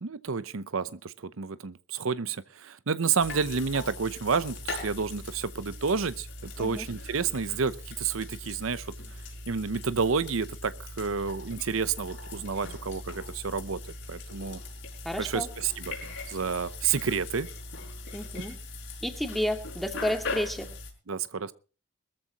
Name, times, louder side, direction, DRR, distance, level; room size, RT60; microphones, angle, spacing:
voice 1, 0.0-8.9 9.5-13.8 14.1-14.6 15.2-16.0 16.3-17.5 21.1-21.5, right 5 dB, 80° right, 15 dB, 0.7 m, -30 dB
sound 1, 3.2-20.9, left 2 dB, 70° left, 5.1 m, -40 dB
voice 2, 15.0-15.5 18.1-18.6 19.0-20.7, equal, ahead, 5 dB, 2.3 m, -31 dB
21.5 x 14.0 x 2.9 m, 0.35 s
head